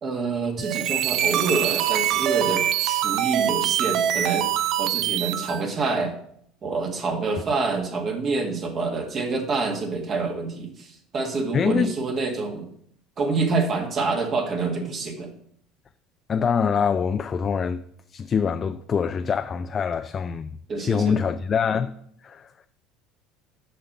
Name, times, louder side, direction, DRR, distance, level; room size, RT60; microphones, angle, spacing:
voice 1, 0.0-4.5 4.8-6.2 6.6-12.7 13.2-15.3 20.7-21.2, right 4 dB, 45° right, 1.8 m, -27 dB
sound 1, 0.6-5.6, right 12 dB, 60° right, 0.4 m, -24 dB
voice 2, 11.5-11.9 16.3-17.8 18.1-21.9 22.2-22.5, left 6 dB, 35° left, 0.4 m, -24 dB
6.4 x 5.8 x 5.5 m
supercardioid pair, 90°, 0 cm